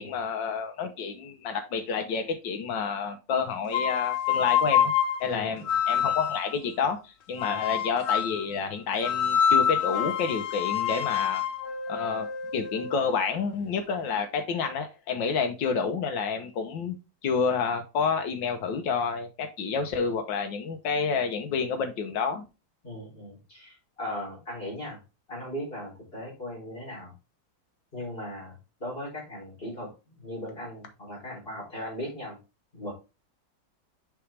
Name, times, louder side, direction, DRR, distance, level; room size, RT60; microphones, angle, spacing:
voice 1, 0.0-4.9 5.2-7.0 7.3-11.4 11.9-12.3 12.5-16.9 17.2-22.5, left 5 dB, 90° left, 6 dB, 1.7 m, -29 dB
sound 1, 3.7-6.5 7.4-8.4 9.0-13.0, left 8 dB, 60° left, 0.7 m, -26 dB
voice 2, 5.3-5.7 7.4-7.6 22.8-25.0 25.3-27.1 27.9-32.4 32.7-32.9, left 1 dB, 30° left, -4 dB, 3.9 m, -38 dB
6.8 x 5.0 x 3.3 m, 0.28 s
omnidirectional pair, 2.0 m